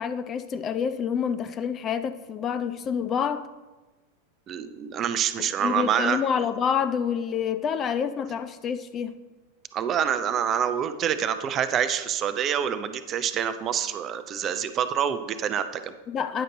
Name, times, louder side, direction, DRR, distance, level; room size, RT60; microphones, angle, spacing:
voice 1, 0.0-3.5 5.4-9.2 16.1-16.4, left 7 dB, 30° left, 13 dB, 0.4 m, -28 dB
voice 2, 4.5-6.2 9.7-15.9, right 8 dB, 30° right, 11 dB, 0.5 m, -26 dB
9.7 x 6.6 x 3.8 m, 1.2 s
figure-of-eight pair, 90°, 0 cm